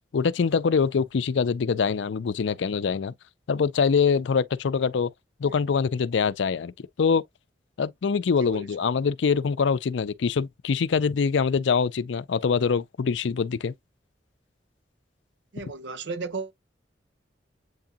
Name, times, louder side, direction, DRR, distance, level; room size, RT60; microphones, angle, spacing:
voice 1, 0.1-3.1 3.5-5.1 5.4-7.2 7.8-13.7, left 5 dB, 80° left, 0.4 m, -24 dB
voice 2, 15.5-16.5, right 3 dB, 75° right, 0.7 m, -34 dB
7.9 x 2.7 x 2.3 m
head